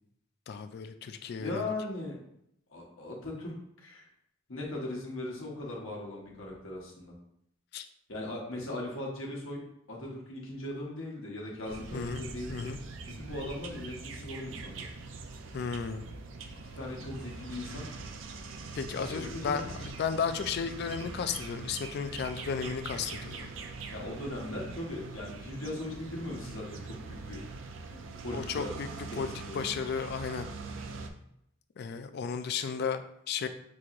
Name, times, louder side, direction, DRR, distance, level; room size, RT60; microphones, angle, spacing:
voice 1, 0.5-1.7 7.7-7.9 11.9-12.8 15.5-16.1 18.7-23.5 27.9-28.1 28.3-28.9 29.2-30.5 31.8-33.0 33.3-33.5, left 6 dB, 55° left, 10 dB, 0.3 m, -34 dB
voice 2, 1.4-2.2 2.7-3.6 3.8-4.1 4.5-7.1 8.1-12.7 13.1-14.9 16.6-17.9 18.9-19.7 23.9-27.4 28.2-28.7 29.1-29.7 32.1-32.2, left 1 dB, 80° left, -3 dB, 1.1 m, -39 dB
sound 1, 11.7-31.1, right 4 dB, 70° right, 0.4 m, -43 dB
6.0 x 2.9 x 2.5 m, 0.75 s
head